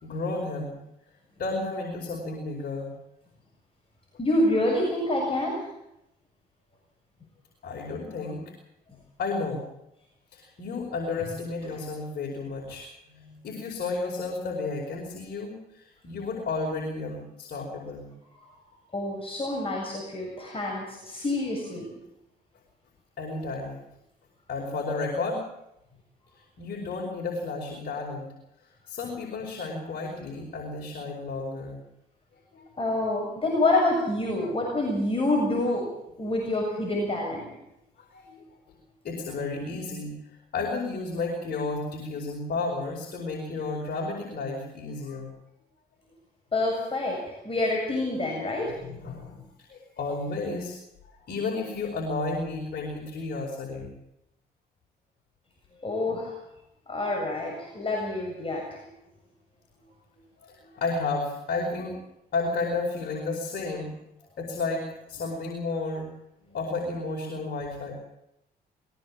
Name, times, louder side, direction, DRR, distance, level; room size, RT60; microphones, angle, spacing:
voice 1, 0.0-0.8 1.4-2.9 7.6-8.4 9.2-9.6 10.3-18.1 23.2-23.8 24.5-25.4 26.6-28.3 28.9-31.8 32.5-32.7 34.4-34.8 38.0-38.4 39.0-40.1 40.5-45.3 46.7-47.2 48.7-49.4 49.7-50.8 51.0-53.9 57.5-57.6 60.4-62.0 62.3-63.9 64.4-66.1 66.4-67.9, left 3 dB, 60° left, 0 dB, 5.0 m, -32 dB
voice 2, 4.2-5.6 18.9-21.9 32.8-35.9 36.2-37.5 46.5-47.2 47.4-48.8 55.8-56.3 56.9-58.8, left 2 dB, 30° left, -1 dB, 7.3 m, -27 dB
20.5 x 17.5 x 7.5 m, 0.84 s
supercardioid pair, 70°, 18 cm